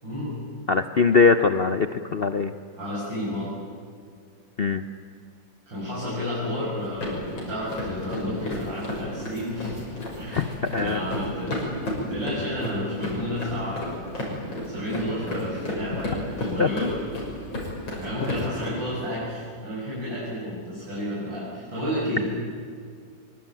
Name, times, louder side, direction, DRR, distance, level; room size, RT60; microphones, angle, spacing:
voice 1, 0.0-0.4 2.7-3.5 5.7-9.8 10.1-14.1 14.6-16.9 18.0-22.2, left 1 dB, 70° right, -8 dB, 8.0 m, -31 dB
voice 2, 0.7-2.5 4.6-4.8 10.3-10.4 10.7-11.0 16.6-16.9, left 4 dB, 60° left, 10 dB, 0.6 m, -21 dB
sound 1, 6.8-18.7, left 1 dB, 85° left, 6.8 m, -33 dB
24.0 x 24.0 x 9.0 m, 2.1 s
omnidirectional pair, 2.1 m